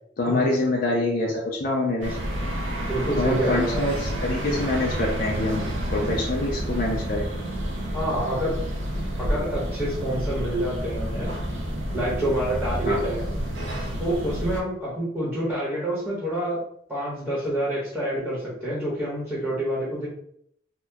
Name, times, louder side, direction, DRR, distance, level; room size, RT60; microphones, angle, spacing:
voice 1, 0.2-2.2 3.2-7.3 12.8-13.0, left 2 dB, 50° left, -2 dB, 0.5 m, -26 dB
sound 1, 2.0-14.6, equal, 85° right, 0.7 m, -29 dB
voice 2, 2.9-3.8 7.9-8.6 9.2-11.3 11.9-13.2 14.0-16.6 16.9-20.1, right 1 dB, ahead, -8 dB, 1.0 m, -27 dB
2.8 x 2.2 x 3.4 m, 0.68 s
head